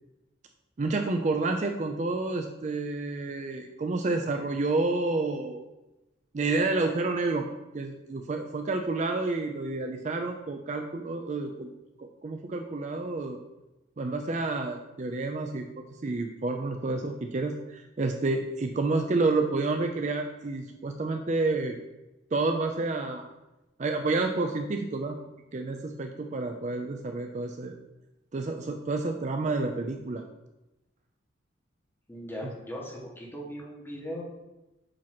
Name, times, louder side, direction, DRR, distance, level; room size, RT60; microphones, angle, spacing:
voice 1, 0.8-5.6 6.3-7.4 7.7-11.7 12.0-13.4 14.0-15.6 16.0-21.8 22.3-23.2 23.8-25.2 25.5-27.7 28.3-30.2, right 3 dB, 35° right, 5 dB, 0.4 m, -29 dB
voice 2, 32.1-34.2, equal, 10° left, -3 dB, 1.3 m, -39 dB
7.5 x 2.9 x 5.8 m, 1.0 s
head